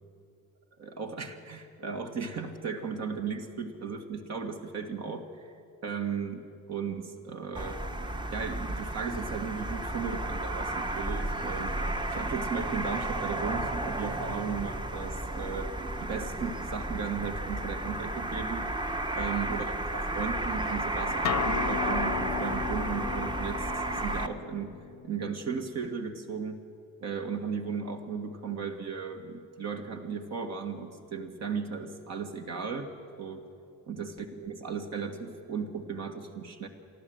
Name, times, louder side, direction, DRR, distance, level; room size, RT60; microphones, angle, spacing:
voice 1, 0.8-5.5 5.8-6.4 6.7-7.8 8.3-11.7 12.1-15.7 16.0-18.7 19.2-24.8 25.0-26.6 27.0-32.9 33.2-33.5 33.9-36.7, right 6 dB, 60° right, 4 dB, 1.9 m, -36 dB
sound 1, 7.5-24.3, right 1 dB, 15° right, 0.9 m, -33 dB
Acoustic guitar, 21.2-26.4, left 13 dB, 65° left, 0.6 m, -37 dB
28.0 x 11.5 x 7.9 m, 2.5 s
cardioid pair, 90°, 30 cm